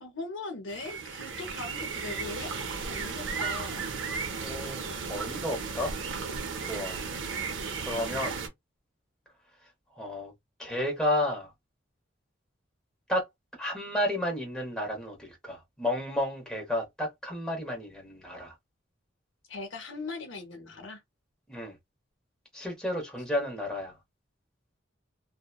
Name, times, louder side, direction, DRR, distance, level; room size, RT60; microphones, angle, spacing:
voice 1, 0.0-2.5 2.8-3.9 19.5-21.0, left 3 dB, 65° left, 0.7 m, -40 dB
sound 1, 0.7-8.5, right 5 dB, 65° right, 0.6 m, -35 dB
voice 2, 4.4-5.9 6.6-7.0 7.8-8.4 9.9-10.3 10.6-11.5 13.1-13.3 13.6-18.5 21.5-21.7 22.5-24.0, left 1 dB, 5° left, 0.9 m, -32 dB
2.9 x 2.1 x 2.2 m
head